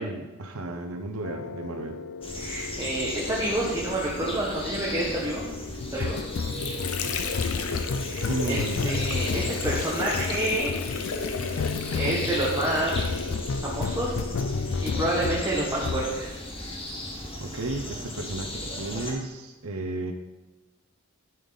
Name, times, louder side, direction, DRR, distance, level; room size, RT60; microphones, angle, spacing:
voice 1, 0.0-2.0 6.5-6.7 8.3-9.0 17.4-20.1, right 2 dB, 75° right, 5 dB, 0.8 m, -33 dB
sound 1, 1.2-15.5 15.8-16.1, left 5 dB, 60° left, 0.4 m, -32 dB
sound 2, 2.2-19.1, left 1 dB, 25° left, 1.5 m, -37 dB
voice 2, 2.4-5.4 5.9-6.2 8.0-10.8 11.9-13.0 13.6-14.2 14.8-16.4, right 1 dB, 15° right, -5 dB, 1.3 m, -28 dB
Water / Sink (filling or washing), 6.0-13.7, left 5 dB, 80° left, 0.8 m, -35 dB
10.5 x 5.3 x 4.1 m, 1.2 s
head